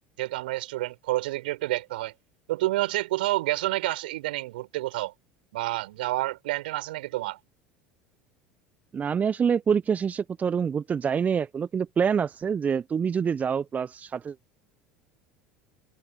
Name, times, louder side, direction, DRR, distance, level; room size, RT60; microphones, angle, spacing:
voice 1, 0.2-2.1 2.5-5.1 5.5-7.4, right 18 dB, 65° right, 5.0 m, -29 dB
voice 2, 8.9-14.3, right 7 dB, 30° right, 0.9 m, -26 dB
figure-of-eight pair, 70°, 6 cm